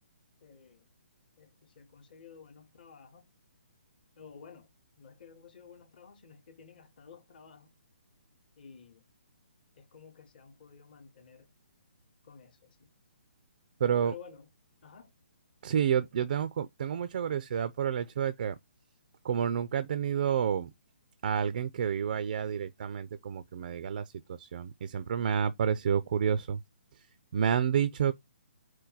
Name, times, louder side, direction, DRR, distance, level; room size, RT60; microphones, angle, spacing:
voice 1, 0.4-0.9 1.4-3.3 4.2-4.7 5.0-7.7 8.6-9.0 9.8-11.5 12.2-12.9 14.0-14.5 14.8-15.1, left 6 dB, 45° left, 0.9 m, -53 dB
voice 2, 13.8-14.1 15.6-18.6 19.2-20.7 21.2-26.6 27.3-28.1, right 8 dB, 45° right, 0.3 m, -29 dB
4.5 x 2.2 x 3.9 m
figure-of-eight pair, 135°, 6 cm